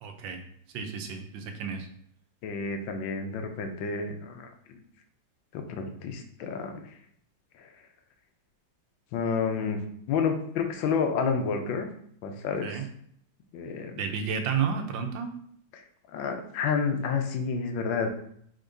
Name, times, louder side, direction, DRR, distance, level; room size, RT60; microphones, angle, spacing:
voice 1, 0.0-0.4 0.7-1.9 12.6-12.8 14.0-15.3, right 6 dB, 80° right, 5 dB, 1.4 m, -31 dB
voice 2, 2.4-4.5 5.5-6.9 7.6-7.7 9.1-11.9 12.2-12.9 13.5-14.0 15.7-15.8 16.1-18.1, left 5 dB, 85° left, 5 dB, 1.4 m, -30 dB
4.9 x 3.6 x 2.6 m, 0.66 s
omnidirectional pair, 2.1 m